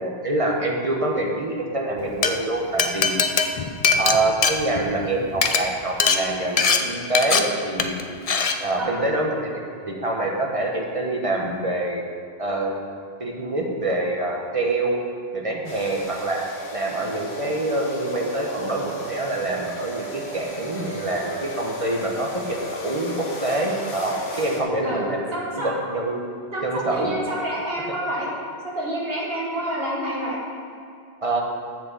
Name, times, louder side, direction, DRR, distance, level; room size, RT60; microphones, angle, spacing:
voice 1, 0.0-3.2 4.0-7.9 8.6-12.0 12.4-12.7 13.2-15.0 15.3-16.4 16.7-26.2 26.6-27.2 31.2-31.4, right 2 dB, 35° right, 0 dB, 1.1 m, -26 dB
Glass, 2.0-2.3 2.8-5.1 5.3-5.6 6.0-6.2 6.6-6.8 7.2-7.4 7.8-8.0 8.3-8.6, left 5 dB, 45° left, 0.5 m, -20 dB
sound 1, 15.6-24.6, right 1 dB, 80° left, 1.5 m, -34 dB
voice 2, 25.3-25.8 26.5-28.3 28.6-30.4, right 1 dB, 65° right, -4 dB, 1.7 m, -28 dB
7.3 x 5.9 x 7.6 m, 2.5 s
omnidirectional pair, 1.1 m